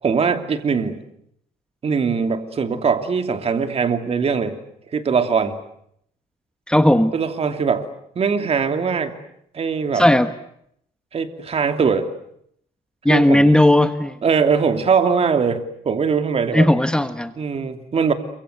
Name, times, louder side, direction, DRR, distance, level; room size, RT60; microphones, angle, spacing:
voice 1, 0.0-1.0 1.8-4.6 4.9-5.6 7.1-7.9 8.1-9.2 9.5-10.1 11.1-12.1 13.1-13.5 14.2-16.7 17.4-18.1, right 5 dB, 35° right, 7 dB, 2.8 m, -21 dB
voice 2, 6.7-7.1 9.9-10.3 13.0-14.1 16.5-17.3, left 1 dB, 5° left, 9 dB, 1.3 m, -15 dB
28.5 x 24.5 x 7.9 m, 0.70 s
cardioid pair, 110°, 17 cm